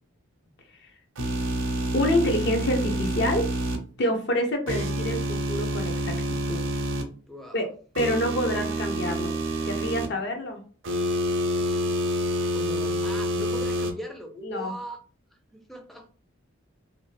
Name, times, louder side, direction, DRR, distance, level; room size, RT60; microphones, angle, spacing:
sound 1, 1.2-3.8 4.7-7.0 7.9-10.1 10.8-13.9, right 1 dB, 65° right, 0.5 m, -27 dB
voice 1, 1.9-3.4 4.0-6.6 7.5-7.7 8.0-9.3 9.6-10.6 14.4-14.7, left 1 dB, 55° left, 4 dB, 0.5 m, -27 dB
voice 2, 7.3-7.7 12.5-15.0 15.5-16.1, equal, ahead, 3 dB, 0.4 m, -39 dB
2.5 x 2.4 x 3.1 m, 0.41 s
head